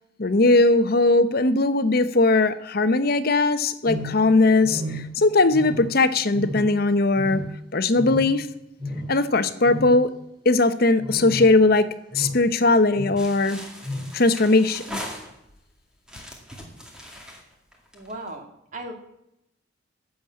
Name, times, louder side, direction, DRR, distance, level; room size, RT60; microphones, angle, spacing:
voice 1, 0.2-7.4 7.7-8.5 9.1-10.1 10.4-13.6 14.1-15.0, left 2 dB, 50° left, 12 dB, 0.8 m, -19 dB
sound 1, 3.9-4.3 4.6-5.2 5.5-6.0 6.3-6.8 7.1-7.6 8.0-8.4 8.8-9.1 9.6-10.0 11.0-11.6 12.1-12.5 12.9-13.3 13.8-14.1, left 1 dB, 25° right, 2.1 m, -32 dB
sound 2, 13.2-15.6 16.0-18.3, equal, 5° right, 2.2 m, -40 dB
voice 2, 17.9-18.9, right 2 dB, 40° right, 4 dB, 2.0 m, -37 dB
12.0 x 7.3 x 8.5 m, 0.81 s
head